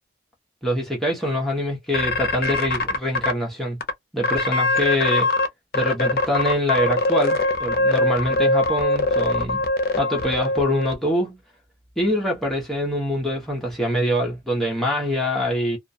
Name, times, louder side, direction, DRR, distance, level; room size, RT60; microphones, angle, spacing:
voice 1, 0.6-3.8 4.1-5.3 5.7-9.7 10.0-11.4 12.0-15.8, equal, ahead, 0.7 m, -24 dB
sound 1, 1.9-3.3 3.8-3.9 4.2-5.5 5.7-10.9, left 2 dB, 50° left, 0.5 m, -22 dB
2.3 x 2.2 x 2.6 m
head